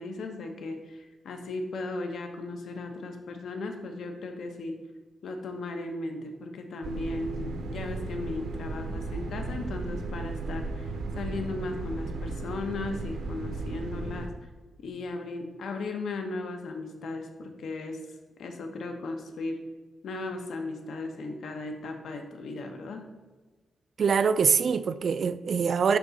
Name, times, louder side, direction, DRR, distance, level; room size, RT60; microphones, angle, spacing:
voice 1, 0.0-4.8 5.2-14.3 14.8-18.0 18.4-19.6 20.0-23.1, left 2 dB, 75° left, 1.0 m, -36 dB
sound 1, 6.8-14.3, right 3 dB, 85° right, 0.7 m, -35 dB
voice 2, 24.0-26.0, right 6 dB, 55° right, 0.3 m, -24 dB
10.5 x 3.6 x 4.0 m
wide cardioid pair, 130°, 0 cm